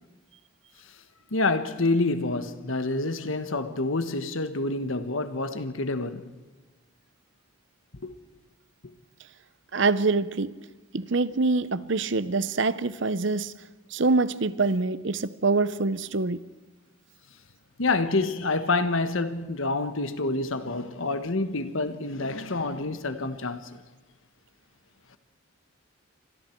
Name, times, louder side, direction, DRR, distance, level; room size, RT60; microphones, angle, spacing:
voice 1, 1.3-6.3 8.0-8.1 17.8-23.8, left 2 dB, 70° left, 1.3 m, -27 dB
voice 2, 9.7-10.6 10.9-13.5 13.9-16.4, right 3 dB, 60° right, 0.8 m, -25 dB
29.0 x 26.0 x 4.6 m
head